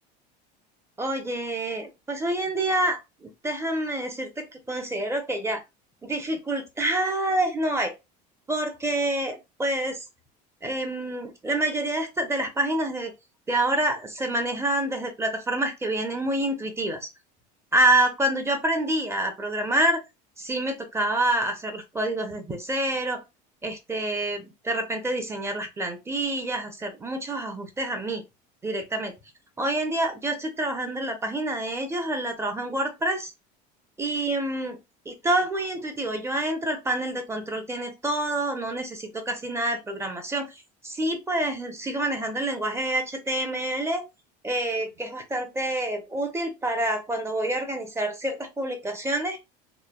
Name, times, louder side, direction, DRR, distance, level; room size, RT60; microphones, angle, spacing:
voice 1, 1.0-5.6 6.0-7.9 8.5-10.0 10.6-13.1 13.5-17.1 17.7-20.0 20.4-23.2 23.6-28.2 28.6-29.1 29.6-33.3 34.0-34.8 35.1-44.0 44.4-49.4, right 1 dB, 15° right, 5 dB, 0.8 m, -27 dB
3.1 x 2.2 x 2.3 m, 0.23 s
supercardioid pair, 110°, 21 cm